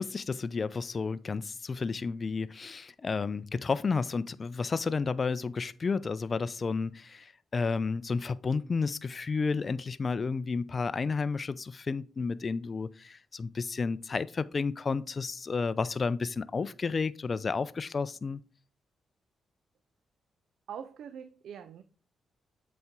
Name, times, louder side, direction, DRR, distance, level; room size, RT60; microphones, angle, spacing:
voice 1, 0.0-18.4, left 4 dB, 45° left, 0.4 m, -31 dB
voice 2, 20.7-21.8, right 8 dB, 70° right, 0.4 m, -43 dB
7.9 x 4.3 x 3.6 m
hypercardioid pair, 45°, 0 cm